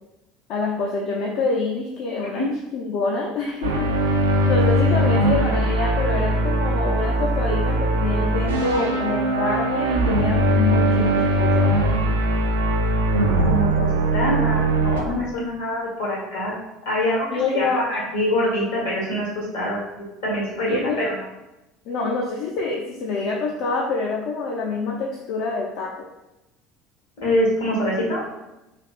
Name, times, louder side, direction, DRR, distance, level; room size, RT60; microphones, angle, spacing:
voice 1, 0.5-2.5 2.7-3.9 4.5-11.7 17.3-17.9 20.7-21.0 21.9-25.9, left 3 dB, 55° left, -1 dB, 0.4 m, -26 dB
sound 1, 3.6-15.0, right 1 dB, 80° right, 0.3 m, -20 dB
voice 2, 13.4-13.9 14.1-16.5 16.8-21.1 27.2-28.2, left 1 dB, 75° left, -5 dB, 1.2 m, -25 dB
3.2 x 2.3 x 2.4 m, 0.96 s
figure-of-eight pair, 65°, 0 cm